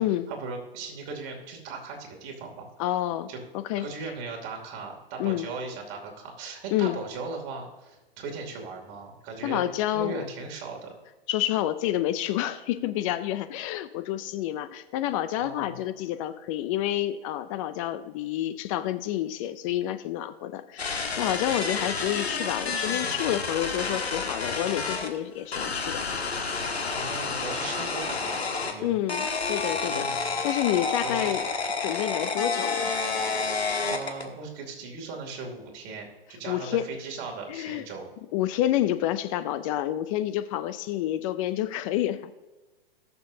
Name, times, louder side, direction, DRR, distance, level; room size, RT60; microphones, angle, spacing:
voice 1, 0.0-2.7 3.3-3.4 3.8-9.7 9.9-10.9 15.3-15.8 26.9-28.9 29.8-30.4 31.0-31.4 33.8-38.1, right 4 dB, 35° right, 1 dB, 2.8 m, -38 dB
voice 2, 2.8-3.3 3.5-3.9 5.2-5.5 6.7-7.0 9.4-10.2 11.3-26.0 28.8-31.5 31.8-32.9 36.5-36.9 37.5-37.8 38.3-42.3, left 13 dB, 35° left, 12 dB, 0.5 m, -29 dB
sound 1, 20.8-25.1 25.5-28.7 29.1-34.3, left 4 dB, 90° left, 1.5 m, -29 dB
19.5 x 6.8 x 2.7 m, 1.2 s
hypercardioid pair, 115°, 31 cm